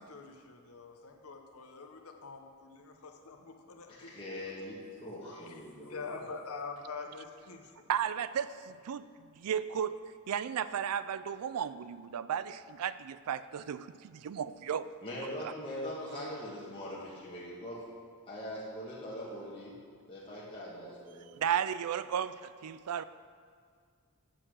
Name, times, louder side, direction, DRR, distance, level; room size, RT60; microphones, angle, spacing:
voice 1, 0.0-4.4 5.2-5.5 5.8-7.6, left 4 dB, 70° left, 3 dB, 0.8 m, -45 dB
voice 2, 4.0-6.2 15.0-17.8 18.3-19.7 20.1-21.3, left 1 dB, 25° left, -7 dB, 1.4 m, -42 dB
voice 3, 7.9-14.9 15.4-15.5 21.4-23.0, right 8 dB, 80° right, 14 dB, 0.4 m, -34 dB
7.8 x 6.0 x 6.2 m, 2.1 s
head